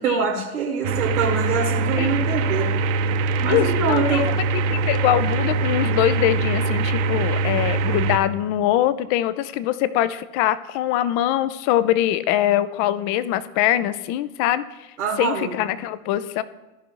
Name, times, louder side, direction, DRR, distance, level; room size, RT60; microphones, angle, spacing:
voice 1, 0.0-2.7 3.2-4.2 15.0-15.5, right 5 dB, 75° right, 0 dB, 1.4 m, -24 dB
sound 1, 0.8-8.2, right 3 dB, 55° right, 0.8 m, -23 dB
voice 2, 3.5-4.3 4.7-16.4, left 12 dB, 45° left, 15 dB, 0.5 m, -23 dB
14.5 x 5.4 x 3.0 m, 1.0 s
figure-of-eight pair, 80°, 43 cm